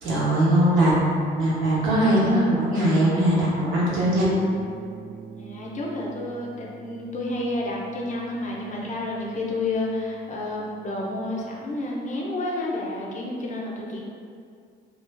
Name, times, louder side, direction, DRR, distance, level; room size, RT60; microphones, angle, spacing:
voice 1, 0.0-4.4, right 1 dB, 80° right, -7 dB, 0.8 m, -21 dB
sound 1, 3.8-11.6, right 4 dB, 15° right, 0.6 m, -43 dB
voice 2, 5.4-14.0, left 2 dB, 40° left, -3 dB, 0.5 m, -30 dB
2.4 x 2.3 x 2.2 m, 2.2 s
cardioid pair, 90°, 20 cm